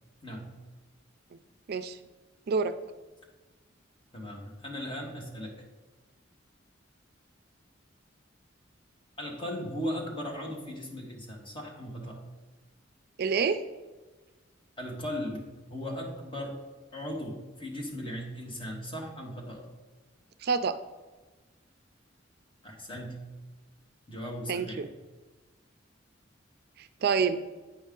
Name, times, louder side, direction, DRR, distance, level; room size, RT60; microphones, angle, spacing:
voice 1, 0.2-0.5 4.1-5.6 9.2-12.2 14.8-15.4 15.7-16.6 16.9-19.7 22.6-23.2 24.1-24.8, equal, 25° left, -1 dB, 1.5 m, -37 dB
voice 2, 13.2-13.6 20.4-20.8 24.5-24.9 26.8-27.4, right 5 dB, 55° right, 10 dB, 0.4 m, -27 dB
8.9 x 5.3 x 3.7 m, 1.3 s
head